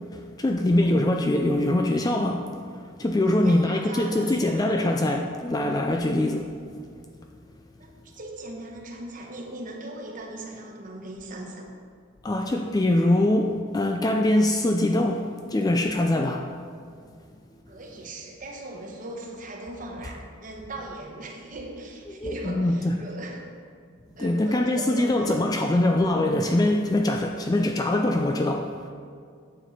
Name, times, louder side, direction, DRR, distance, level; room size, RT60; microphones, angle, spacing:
voice 1, 0.1-2.5 3.0-6.5 12.2-16.5 22.1-23.0 24.2-28.9, left 1 dB, 15° left, 3 dB, 0.3 m, -23 dB
voice 2, 3.2-4.7 7.8-11.7 17.7-23.5 24.2-25.4, right 2 dB, 35° right, 0 dB, 1.0 m, -39 dB
9.0 x 7.0 x 4.1 m, 2.2 s
head